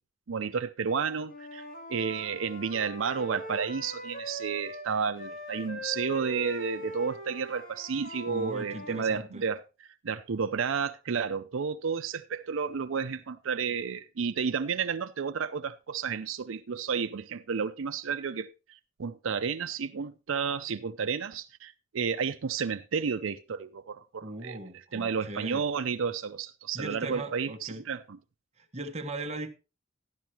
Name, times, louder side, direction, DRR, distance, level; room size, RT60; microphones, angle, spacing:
voice 1, 0.3-1.6 1.9-24.6 24.9-28.2, right 6 dB, 85° right, 0.5 m, -32 dB
Wind instrument woodwind instrument, 1.2-4.9 5.2-9.0, equal, 45° left, 2.7 m, -41 dB
voice 2, 8.3-9.4 24.2-25.6 26.7-27.8 28.7-29.6, right 2 dB, 35° right, 1.2 m, -38 dB
12.5 x 11.5 x 2.9 m
head